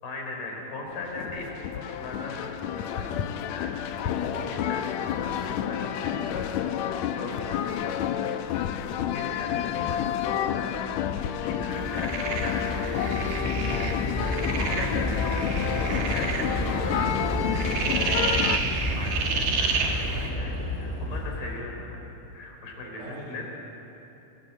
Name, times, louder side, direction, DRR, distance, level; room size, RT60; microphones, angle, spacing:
voice 1, 0.0-3.2 3.5-6.5 6.7-10.7 11.3-17.4 18.0-22.0 22.3-23.4, left 2 dB, 60° left, 1 dB, 6.0 m, -39 dB
sound 1, 0.9-18.6, left 10 dB, 85° left, 1.6 m, -30 dB
Train / Subway metro underground, 9.4-21.6, left 1 dB, 5° left, 2.3 m, -31 dB
sound 2, 11.8-20.3, right 5 dB, 85° right, 4.1 m, -31 dB
voice 2, 22.8-23.5, right 1 dB, 60° right, -2 dB, 5.3 m, -45 dB
29.0 x 19.0 x 8.4 m, 3.0 s
omnidirectional pair, 4.3 m